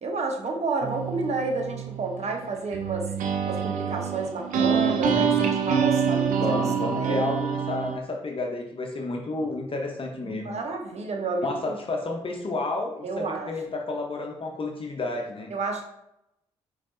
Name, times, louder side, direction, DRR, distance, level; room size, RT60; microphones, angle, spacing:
voice 1, 0.0-3.1 3.5-7.4 10.2-11.8 13.0-13.5 15.5-15.8, right 3 dB, 55° right, 3 dB, 0.9 m, -30 dB
sound 1, 0.8-8.0, right 7 dB, 70° right, 0.6 m, -26 dB
voice 2, 6.4-10.5 11.4-15.5, left 2 dB, 40° left, 2 dB, 0.8 m, -31 dB
5.1 x 3.2 x 2.6 m, 0.82 s
hypercardioid pair, 45°, 14 cm